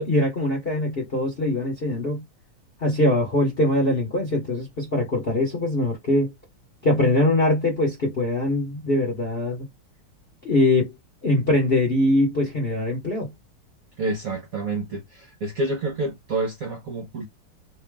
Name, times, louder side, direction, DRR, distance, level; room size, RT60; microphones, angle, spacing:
voice 1, 0.0-2.2 2.8-6.3 6.8-9.7 10.4-10.9 11.2-13.3, left 1 dB, 40° left, 0.8 m, -22 dB
voice 2, 14.0-17.3, right 2 dB, 60° right, 0.9 m, -28 dB
3.2 x 2.8 x 3.4 m
omnidirectional pair, 2.4 m